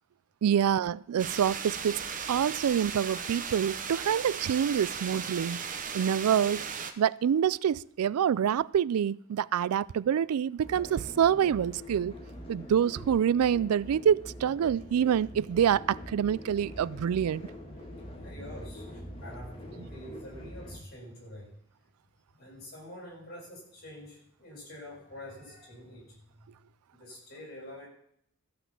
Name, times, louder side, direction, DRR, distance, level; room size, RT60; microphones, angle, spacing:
voice 1, 0.4-5.6 5.9-6.7 7.0-12.1 12.5-17.4, right 8 dB, 90° right, 0.3 m, -26 dB
sound 1, 1.2-6.9, right 6 dB, 35° right, 0.9 m, -37 dB
sound 2, 10.6-20.8, left 1 dB, 25° left, 1.9 m, -44 dB
voice 2, 18.2-21.5 22.4-26.5 26.9-27.9, left 1 dB, 45° left, 6.0 m, -47 dB
14.0 x 6.1 x 7.1 m
head